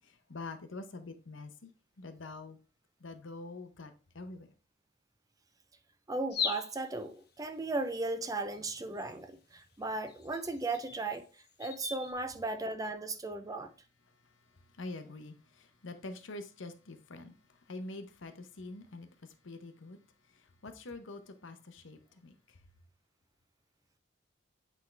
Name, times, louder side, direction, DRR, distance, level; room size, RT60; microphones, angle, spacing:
voice 1, 0.0-1.7 2.0-2.6 3.0-4.5 14.7-17.3 17.7-19.1 19.4-20.0 20.6-22.3, left 2 dB, 80° left, 0.8 m, -45 dB
voice 2, 6.1-11.3 11.6-13.7, right 2 dB, 20° right, 0.5 m, -36 dB
sound 1, 6.3-6.9 8.5-8.6 9.0-9.1 10.1-12.1, left 6 dB, 55° left, 1.0 m, -38 dB
8.2 x 3.6 x 3.3 m
head